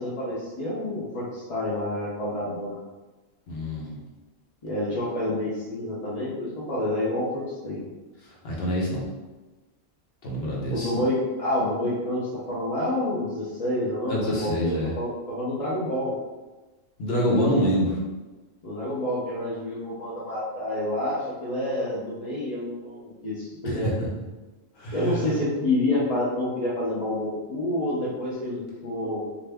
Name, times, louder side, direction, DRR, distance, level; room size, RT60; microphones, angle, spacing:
voice 1, 0.0-2.8 4.6-7.8 10.7-16.1 18.6-23.9 24.9-29.3, left 1 dB, 40° left, -10 dB, 0.6 m, -28 dB
voice 2, 3.5-4.0 8.4-9.1 10.2-10.9 14.1-14.9 17.0-18.0 23.6-23.8 24.8-25.3, equal, 55° left, -5 dB, 1.0 m, -26 dB
2.5 x 2.5 x 3.3 m, 1.2 s
omnidirectional pair, 1.3 m